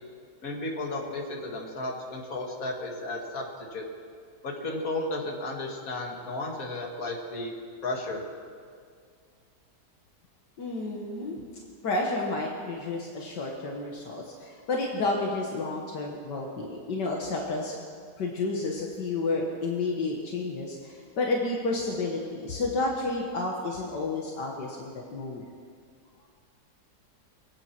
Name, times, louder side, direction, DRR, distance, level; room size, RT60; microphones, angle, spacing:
voice 1, 0.4-3.8 4.4-7.6 7.8-8.2, left 2 dB, 50° left, 0 dB, 2.3 m, -33 dB
voice 2, 10.6-11.4 11.8-17.8 18.2-25.5, left 3 dB, 70° left, -1 dB, 2.0 m, -31 dB
23.0 x 9.1 x 5.9 m, 2.1 s
omnidirectional pair, 1.9 m